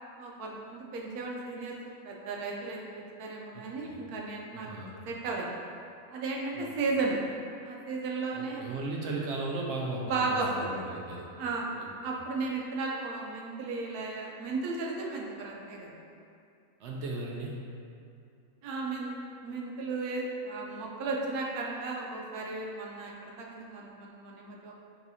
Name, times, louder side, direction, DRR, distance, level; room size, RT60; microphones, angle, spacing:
voice 1, 0.2-4.7 5.1-5.6 6.1-7.2 7.6-8.7 10.1-10.8 11.4-11.7 12.0-16.0 18.6-19.1 19.4-24.7, right 3 dB, 80° right, -2 dB, 1.1 m, -35 dB
voice 2, 3.5-4.0 4.5-4.9 6.6-6.7 8.3-11.3 11.8-11.9 16.8-17.6, right 2 dB, 65° right, -2 dB, 0.7 m, -36 dB
5.4 x 3.1 x 2.7 m, 2.5 s
omnidirectional pair, 1.6 m